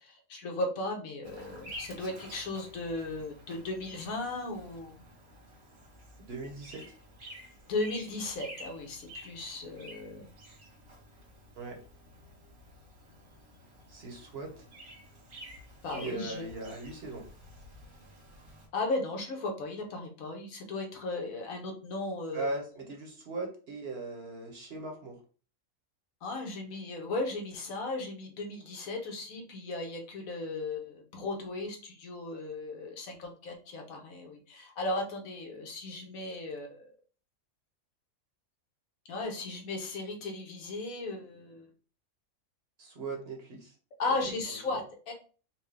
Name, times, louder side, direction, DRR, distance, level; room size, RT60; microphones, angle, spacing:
voice 1, 0.0-5.0 7.7-10.3 15.8-16.4 18.7-22.5 26.2-36.9 39.0-41.7 44.0-45.1, left 2 dB, 75° left, 2 dB, 1.4 m, -36 dB
Bird vocalization bird call bird song, 1.2-18.7, equal, 85° right, 1.8 m, -50 dB
voice 2, 6.3-6.9 11.5-11.8 13.9-14.6 15.9-17.3 22.3-25.2 42.8-43.7, right 2 dB, 50° right, 2 dB, 1.0 m, -39 dB
4.4 x 2.2 x 3.2 m, 0.38 s
omnidirectional pair, 1.4 m